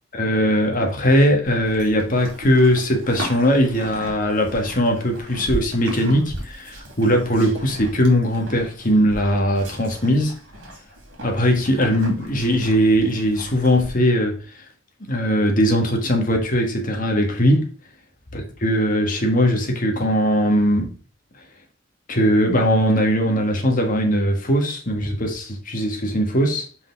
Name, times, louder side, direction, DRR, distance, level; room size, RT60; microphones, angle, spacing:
voice 1, 0.1-10.3 11.2-14.6 15.1-17.7 18.3-20.9 22.1-26.7, equal, 45° left, 1.5 m, -20 dB
Livestock farm animals working animals, 1.4-13.9, equal, 75° right, 2.7 m, -37 dB
5.8 x 5.2 x 3.4 m
head